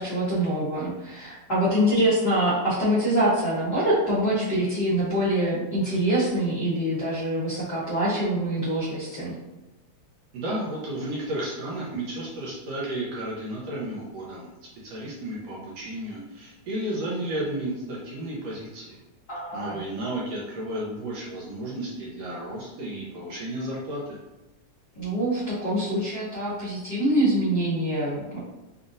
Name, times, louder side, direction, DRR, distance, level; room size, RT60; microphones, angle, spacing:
voice 1, 0.0-9.3 19.3-19.8 24.9-28.4, right 1 dB, 65° left, -10 dB, 1.0 m, -25 dB
voice 2, 10.3-14.5 14.8-19.0 19.5-24.2, right 1 dB, 75° right, -5 dB, 1.6 m, -33 dB
5.5 x 2.4 x 2.6 m, 1.0 s
omnidirectional pair, 3.4 m